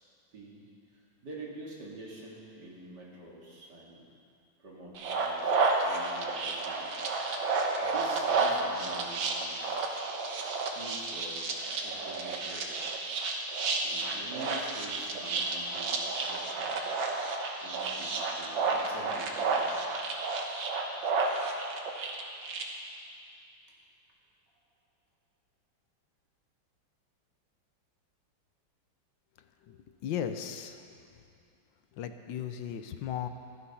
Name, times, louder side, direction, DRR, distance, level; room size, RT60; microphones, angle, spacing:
voice 1, 0.3-0.7 0.9-4.1 4.6-6.9 7.8-9.9 10.7-11.5 11.8-12.9 13.5-17.0 17.6-19.7 21.0-21.3, right 2 dB, 60° right, -4 dB, 2.9 m, -47 dB
sound 1, 5.0-22.6, right 3 dB, 85° right, 1.9 m, -31 dB
voice 2, 29.4-31.2 31.9-33.3, left 9 dB, 75° left, 8 dB, 1.4 m, -37 dB
14.0 x 12.0 x 5.7 m, 2.5 s
omnidirectional pair, 2.1 m